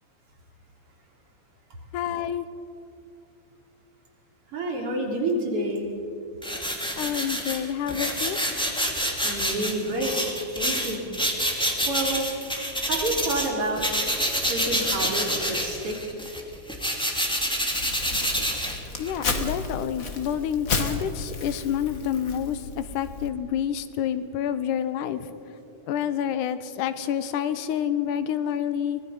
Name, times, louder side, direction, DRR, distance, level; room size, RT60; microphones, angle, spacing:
voice 1, 1.9-2.5 7.0-8.4 19.0-25.3 25.9-29.0, left 9 dB, 80° left, 12 dB, 2.4 m, -28 dB
voice 2, 4.5-5.9 9.2-10.2 10.5-11.0 11.9-12.3 12.9-13.8 14.4-16.0, right 1 dB, 45° right, -1 dB, 4.0 m, -28 dB
sound 1, 6.4-13.5 13.8-19.2, equal, ahead, 1.6 m, -27 dB
Crumpling crinkling, 17.7-23.3, left 4 dB, 40° left, 1.3 m, -32 dB
23.5 x 20.0 x 5.6 m, 2.6 s
omnidirectional pair, 3.6 m